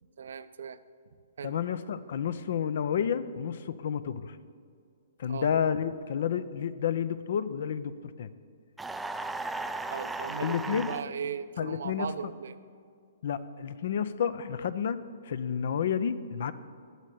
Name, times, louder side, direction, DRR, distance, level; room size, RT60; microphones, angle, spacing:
voice 1, 0.2-0.8 1.4-1.5 5.3-5.5 9.9-12.5, right 7 dB, 70° right, 13 dB, 0.5 m, -37 dB
voice 2, 1.4-4.4 5.2-8.3 10.4-10.9 11.6-12.3 13.2-15.0 15.2-16.5, left 8 dB, 60° left, 15 dB, 0.5 m, -30 dB
sound 1, 8.8-11.0, right 2 dB, 5° right, 0.3 m, -35 dB
8.2 x 6.3 x 8.2 m, 2.2 s
hypercardioid pair, 135°, 0 cm